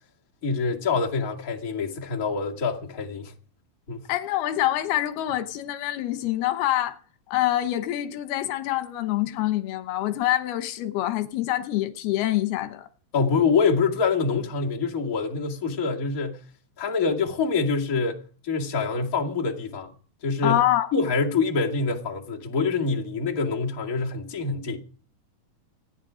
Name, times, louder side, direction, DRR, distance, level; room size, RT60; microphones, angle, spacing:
voice 1, 0.4-3.3 3.9-4.0 13.1-16.4 16.8-19.9 20.2-20.6 20.9-24.8, left 4 dB, 30° left, 2.0 m, -25 dB
voice 2, 4.1-7.0 7.3-12.9 20.4-20.9, left 14 dB, 90° left, 3.0 m, -25 dB
26.5 x 9.9 x 5.1 m
omnidirectional pair, 4.3 m